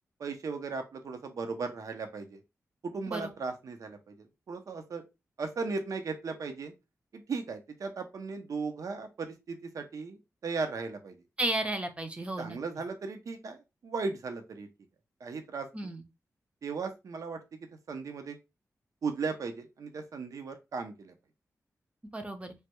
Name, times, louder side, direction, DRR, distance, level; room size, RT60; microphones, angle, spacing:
voice 1, 0.2-2.4 2.8-5.0 5.4-6.7 7.1-11.2 12.4-14.7 15.2-15.9 16.6-17.4 17.9-18.4 19.0-21.1, right 4 dB, 70° right, 7 dB, 0.5 m, -37 dB
voice 2, 11.4-12.6 15.7-16.0 22.1-22.5, right 1 dB, 20° right, 5 dB, 0.5 m, -33 dB
3.2 x 2.2 x 2.9 m, 0.24 s
wide cardioid pair, 90°, 6 cm